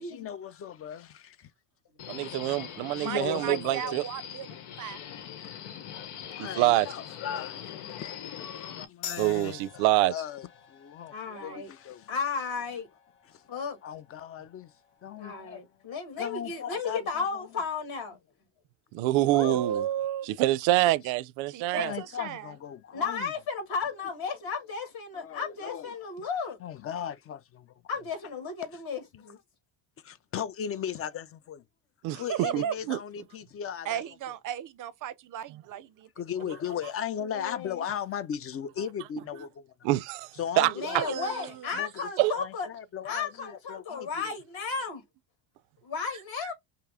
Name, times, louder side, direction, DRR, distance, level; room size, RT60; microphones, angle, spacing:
voice 1, 0.0-1.5 2.2-2.6 2.9-4.0 6.1-12.1 13.3-13.4 13.8-14.7 15.0-15.6 16.2-17.5 19.4-19.6 21.7-23.3 25.2-25.9 26.6-27.7 30.0-31.6 32.1-34.0 36.2-39.7 40.4-41.2 41.7-41.9 42.2-44.4, left 9 dB, 30° left, 0.4 m, -37 dB
Subway metro underground, 2.0-8.8, left 9 dB, 85° left, 1.0 m, -41 dB
voice 2, 2.1-4.0 6.4-6.9 9.2-10.1 18.9-19.9 20.3-21.9 32.0-32.2 32.5-33.0 39.8-40.3 40.6-41.0 42.2-42.3, right 16 dB, 85° right, 0.6 m, -26 dB
voice 3, 2.9-5.0 11.3-11.6 19.2-20.3 21.5-22.5 32.3-32.7 33.8-36.1 40.7-41.7, right 10 dB, 45° right, 0.5 m, -35 dB
sound 1, 9.0-16.1, left 8 dB, 70° left, 1.4 m, -48 dB
voice 4, 11.1-11.7 12.1-12.9 13.5-13.8 15.2-18.2 19.3-19.8 22.9-26.6 27.9-29.4 37.2-37.8 40.8-42.7 43.0-45.0 45.8-46.5, left 5 dB, 50° left, 2.1 m, -34 dB
5.6 x 2.0 x 3.5 m
cardioid pair, 130°, 46 cm